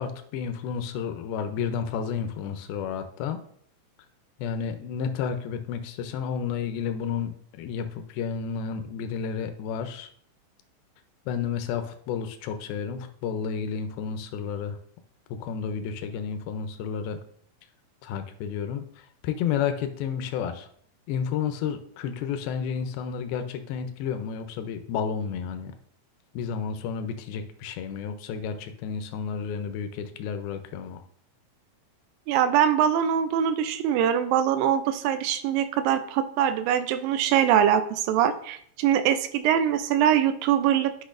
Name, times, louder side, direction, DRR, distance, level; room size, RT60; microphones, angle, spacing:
voice 1, 0.0-3.4 4.4-10.1 11.3-14.8 15.3-17.2 18.0-20.7 21.1-25.7 26.3-31.0, left 7 dB, 90° left, 8 dB, 2.6 m, -31 dB
voice 2, 32.3-41.0, right 9 dB, 80° right, 11 dB, 2.2 m, -23 dB
10.5 x 6.0 x 2.5 m, 0.63 s
omnidirectional pair, 4.2 m